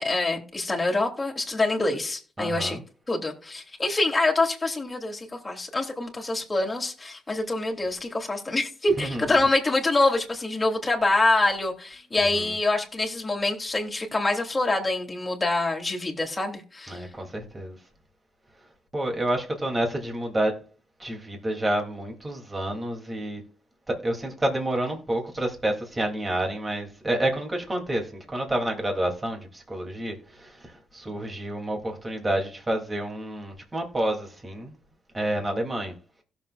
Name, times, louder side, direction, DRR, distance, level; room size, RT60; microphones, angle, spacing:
voice 1, 0.0-2.8 3.1-17.0, left 2 dB, 20° left, 3.2 m, -25 dB
voice 2, 2.4-2.8 9.0-9.2 12.2-12.5 16.9-17.8 18.9-20.6 21.0-23.4 23.9-34.7 35.1-35.9, right 1 dB, 20° right, 3.2 m, -29 dB
16.5 x 7.3 x 2.6 m
cardioid pair, 90°, 0 cm